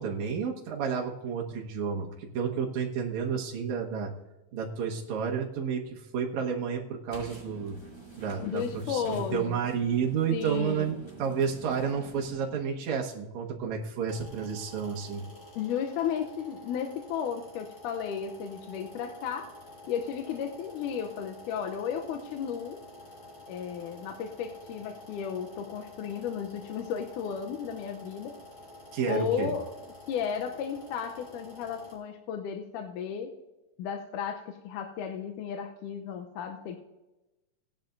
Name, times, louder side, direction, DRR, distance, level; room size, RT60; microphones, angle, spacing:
voice 1, 0.0-4.1 4.5-7.8 8.2-15.2 28.9-29.5, right 6 dB, 65° right, -1 dB, 2.5 m, -31 dB
sound 1, 7.1-12.9, right 3 dB, 10° left, 2.5 m, -48 dB
voice 2, 8.4-9.6 10.3-11.0 15.6-19.5 19.9-22.8 23.5-28.4 29.1-29.7 30.1-33.3 33.8-36.8, left 7 dB, 85° left, 5 dB, 2.2 m, -34 dB
sound 2, 14.1-32.0, left 2 dB, 40° left, 4.3 m, -49 dB
18.0 x 10.5 x 2.6 m, 1.0 s
omnidirectional pair, 3.7 m